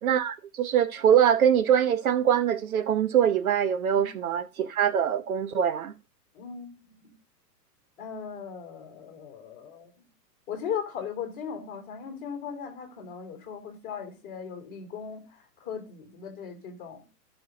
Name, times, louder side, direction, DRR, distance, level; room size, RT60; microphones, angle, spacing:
voice 1, 0.0-5.9, right 9 dB, 60° right, 0.6 m, -23 dB
voice 2, 6.3-7.1 8.0-10.1 10.5-17.0, left 7 dB, 15° left, 2.8 m, -38 dB
12.5 x 6.1 x 3.8 m
hypercardioid pair, 175°, 50 cm